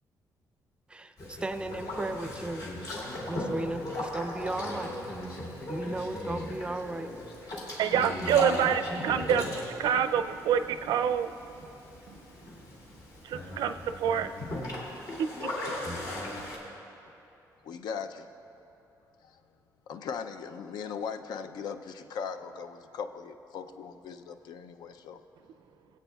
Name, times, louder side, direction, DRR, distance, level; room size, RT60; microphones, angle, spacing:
voice 1, 0.9-2.6 3.3-5.0 5.7-7.1, right 2 dB, 15° right, 10 dB, 0.4 m, -35 dB
Boat Water vehicle, 1.2-16.6, left 1 dB, 60° left, 2.2 m, -37 dB
voice 2, 7.8-11.3 12.1-12.2 13.2-14.3 15.2-15.7, right 8 dB, 90° right, 10 dB, 0.4 m, -27 dB
voice 3, 17.6-18.3 19.2-19.4 19.9-25.2, left 6 dB, 75° left, 8 dB, 0.4 m, -39 dB
22.0 x 8.2 x 2.3 m, 2.9 s
cardioid pair, 150°, 7 cm